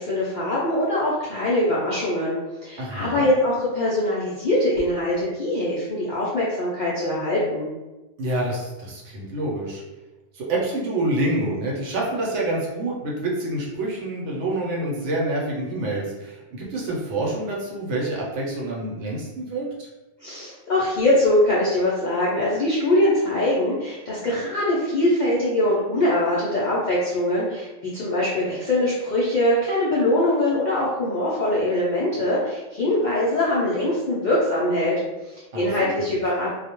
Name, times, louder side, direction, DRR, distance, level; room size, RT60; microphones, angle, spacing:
voice 1, 0.0-2.4 2.6-7.7 20.2-36.5, left 1 dB, 60° left, -8 dB, 0.5 m, -22 dB
voice 2, 2.8-3.3 8.2-9.8 10.3-19.9 35.5-35.9, right 1 dB, 70° right, -3 dB, 0.9 m, -27 dB
2.3 x 2.0 x 2.8 m, 1.1 s
omnidirectional pair, 1.3 m